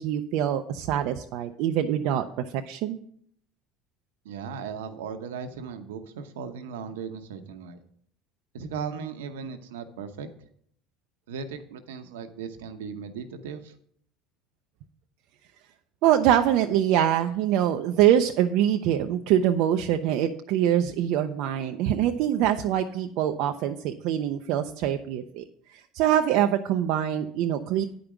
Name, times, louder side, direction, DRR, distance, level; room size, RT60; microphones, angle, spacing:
voice 1, 0.0-2.2 2.7-3.0 16.0-25.4 25.7-27.8, right 11 dB, 65° right, 6 dB, 0.5 m, -24 dB
voice 2, 4.2-7.8 8.5-10.3 11.3-13.7, right 6 dB, 85° right, 8 dB, 0.9 m, -37 dB
9.5 x 5.1 x 6.0 m, 0.65 s
hypercardioid pair, 80°, 0 cm